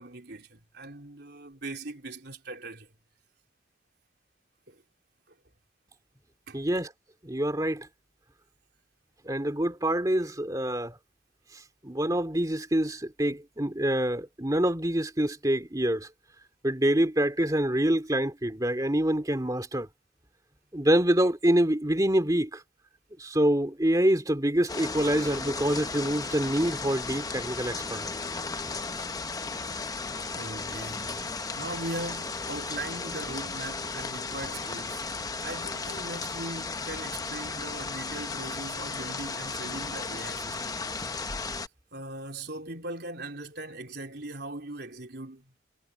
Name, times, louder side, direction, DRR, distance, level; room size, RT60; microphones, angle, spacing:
voice 1, 0.0-2.9 4.7-4.8 5.3-5.4 6.5-6.6 30.4-31.3 31.5-35.1 35.4-40.8 41.9-45.5, right 2 dB, 55° right, 4.1 m, -40 dB
voice 2, 6.5-6.9 7.2-7.9 9.2-11.0 11.5-16.1 16.6-19.9 20.7-22.6 23.2-28.2, right 1 dB, 20° right, 2.7 m, -26 dB
sound 1, 24.7-41.7, left 4 dB, 20° left, 0.8 m, -35 dB
head